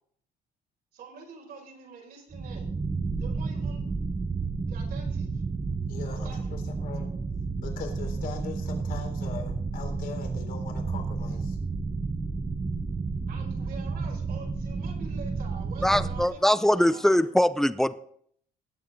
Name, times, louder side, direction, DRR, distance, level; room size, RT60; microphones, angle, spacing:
voice 1, 0.9-2.7 3.2-3.8 4.6-5.4 6.0-6.7 13.3-17.0, right 5 dB, 65° right, -1 dB, 5.8 m, -46 dB
sound 1, 2.3-16.3, right 4 dB, 20° right, 0.9 m, -31 dB
voice 2, 5.9-7.1 7.6-11.6, left 6 dB, 60° left, 3 dB, 3.8 m, -41 dB
voice 3, 15.8-17.9, left 1 dB, ahead, 14 dB, 0.6 m, -22 dB
19.0 x 7.5 x 4.0 m, 0.62 s
cardioid pair, 110°, 17 cm